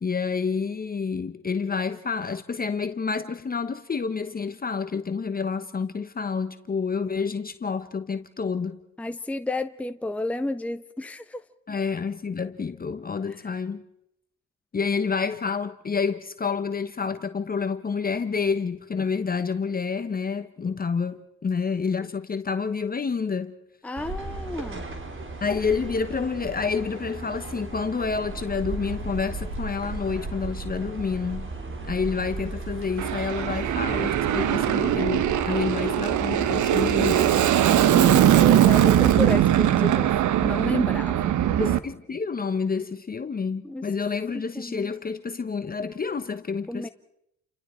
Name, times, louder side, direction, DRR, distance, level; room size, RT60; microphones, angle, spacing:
voice 1, 0.0-8.8 11.7-13.8 14.7-23.5 25.4-31.5 31.8-37.4 41.6-46.9, left 5 dB, 30° left, 1.0 m, -29 dB
voice 2, 9.0-11.4 23.8-24.8 36.8-37.3 37.8-40.1 40.4-41.3 43.6-43.8 44.3-44.9 46.7-46.9, left 2 dB, 5° left, 0.9 m, -31 dB
sound 1, 23.9-39.3, right 3 dB, 40° right, 3.6 m, -35 dB
Aircraft, 33.0-41.8, right 11 dB, 75° right, 1.1 m, -21 dB
30.0 x 26.5 x 4.5 m
cardioid pair, 90°, 30 cm